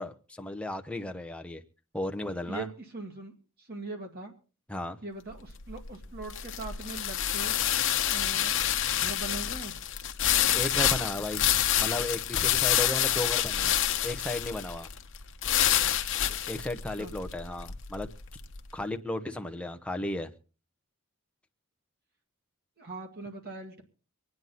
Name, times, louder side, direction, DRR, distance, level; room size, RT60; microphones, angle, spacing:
voice 1, 0.0-1.6 1.9-2.7 4.7-5.0 10.5-11.4 11.8-14.9 16.5-18.1 18.7-20.3, left 1 dB, 5° left, 5 dB, 0.9 m, -34 dB
voice 2, 2.5-3.3 3.6-4.3 5.0-7.5 8.1-9.7 17.0-17.1 22.8-23.8, right 3 dB, 45° right, 2 dB, 2.1 m, -41 dB
sound 1, 5.3-18.6, left 11 dB, 60° left, 1.1 m, -28 dB
25.0 x 9.4 x 4.1 m, 0.36 s
head